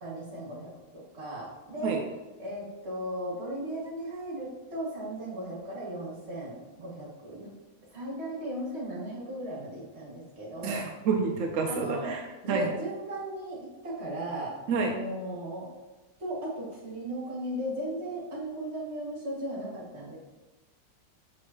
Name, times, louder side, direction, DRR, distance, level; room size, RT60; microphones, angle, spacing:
voice 1, 0.0-2.0 2.4-7.6 7.8-10.9 11.6-12.2 12.4-15.7 16.2-20.2, right 1 dB, 35° right, -5 dB, 2.1 m, -36 dB
voice 2, 10.6-12.2 12.5-12.7 14.7-14.9, right 5 dB, 70° right, 2 dB, 0.7 m, -28 dB
6.3 x 5.3 x 2.9 m, 1.1 s
omnidirectional pair, 1.9 m